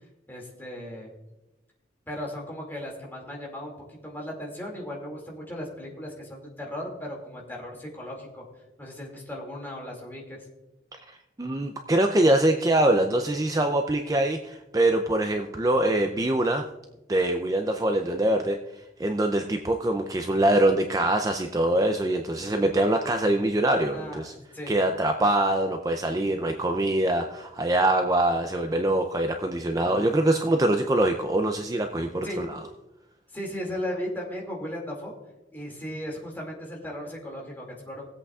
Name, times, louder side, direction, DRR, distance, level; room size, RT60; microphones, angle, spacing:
voice 1, 0.3-1.1 2.1-3.7 4.0-8.4 8.8-10.5 23.9-24.7 32.2-32.4 33.3-35.1 35.5-38.1, equal, 10° left, -2 dB, 2.3 m, -36 dB
voice 2, 11.4-16.6 17.1-18.6 19.0-24.3 24.7-32.6, right 1 dB, 20° right, 5 dB, 0.5 m, -24 dB
18.5 x 8.1 x 2.4 m, 0.99 s
head